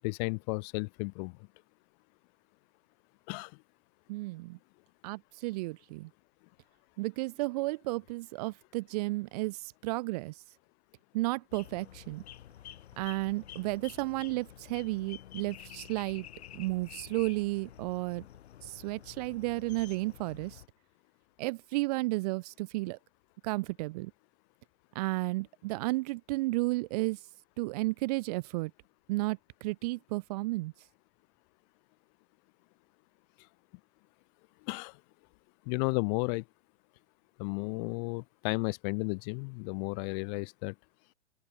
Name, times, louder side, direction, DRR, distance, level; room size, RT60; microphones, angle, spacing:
voice 1, 0.0-1.4 3.3-3.5 34.7-35.0 35.7-36.4 37.4-40.7, left 35 dB, 40° left, 1.2 m, -33 dB
voice 2, 4.1-4.6 5.0-6.1 7.0-10.3 11.1-12.2 13.0-16.3 16.5-18.3 18.6-20.6 21.4-23.0 23.4-24.1 25.0-27.2 27.6-28.7 29.1-30.7, right 22 dB, 35° right, 0.4 m, -33 dB
sound 1, 11.5-20.7, left 11 dB, 65° left, 7.3 m, -50 dB
open air
hypercardioid pair, 110°, 35 cm